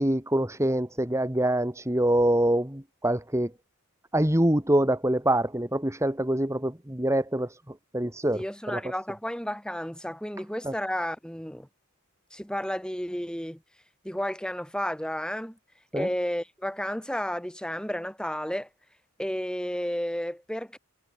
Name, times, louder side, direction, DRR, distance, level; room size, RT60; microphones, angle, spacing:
voice 1, 0.0-3.5 4.1-8.8 10.6-10.7 15.9-16.1, right 1 dB, 15° right, 2.1 m, -25 dB
voice 2, 8.3-11.7 12.3-13.6 14.0-15.6 16.0-18.7 19.2-20.8, equal, 5° left, 5.4 m, -32 dB
head